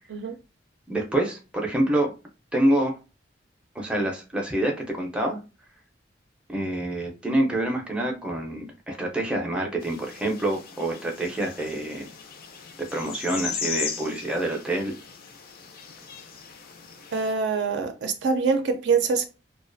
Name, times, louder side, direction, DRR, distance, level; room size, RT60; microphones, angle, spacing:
voice 1, 0.9-2.1 2.5-3.0 3.7-5.4 6.5-12.1 12.8-14.9, right 1 dB, 5° right, 0.5 m, -26 dB
sound 1, 9.8-17.3, left 6 dB, 55° left, 0.4 m, -38 dB
voice 2, 17.1-19.3, right 5 dB, 70° right, 0.4 m, -24 dB
2.4 x 2.2 x 2.5 m
head